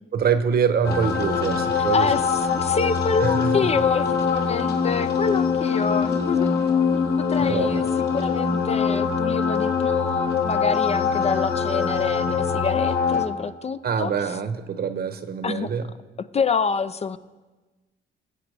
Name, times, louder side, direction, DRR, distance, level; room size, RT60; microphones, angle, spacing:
voice 1, 0.1-2.1 3.2-3.5 7.4-7.9 13.8-15.9, right 6 dB, 50° right, 10 dB, 1.0 m, -25 dB
sound 1, 0.8-13.3, left 6 dB, 55° left, 2.1 m, -23 dB
voice 2, 1.8-14.4 15.4-15.7 16.2-17.2, left 5 dB, 35° left, 13 dB, 0.4 m, -27 dB
21.0 x 8.0 x 3.3 m, 1.2 s
cardioid pair, 90°, 20 cm